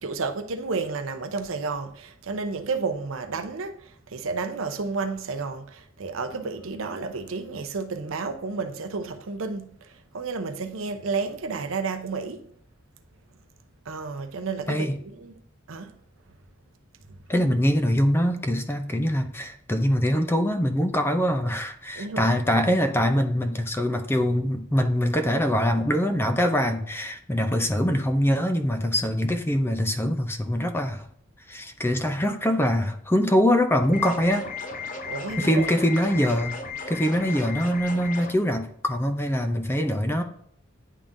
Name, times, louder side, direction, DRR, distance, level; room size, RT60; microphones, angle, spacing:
voice 1, 0.0-12.4 13.9-15.4 15.7-15.9 17.1-17.2 21.9-22.3 35.1-35.7, right 4 dB, 75° right, 0.7 m, -31 dB
voice 2, 17.3-31.1 31.5-34.5 35.4-36.5 36.9-40.2, equal, 10° left, 0.5 m, -23 dB
sound 1, 33.9-38.3, left 4 dB, 40° left, 0.8 m, -35 dB
10.0 x 3.6 x 2.6 m
head